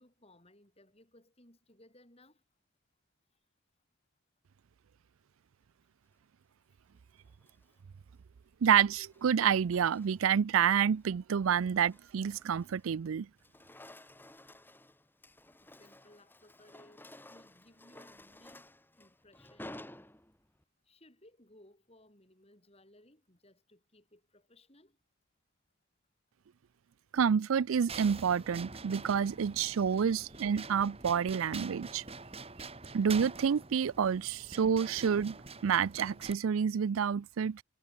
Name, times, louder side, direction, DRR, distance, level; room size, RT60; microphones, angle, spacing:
voice 1, 0.0-2.4 15.6-17.0 17.3-19.7 20.9-25.0, left 1 dB, 30° left, 5.0 m, -62 dB
sound 1, 7.3-7.7 8.9-10.4 10.8-11.1 11.6-13.0 13.3-20.6, left 1 dB, 10° left, 3.0 m, -54 dB
voice 2, 8.6-13.3 27.1-32.0 32.9-35.4 35.6-37.6, right 7 dB, 80° right, 0.4 m, -28 dB
sound 2, 27.9-36.3, right 4 dB, 30° right, 2.3 m, -46 dB
head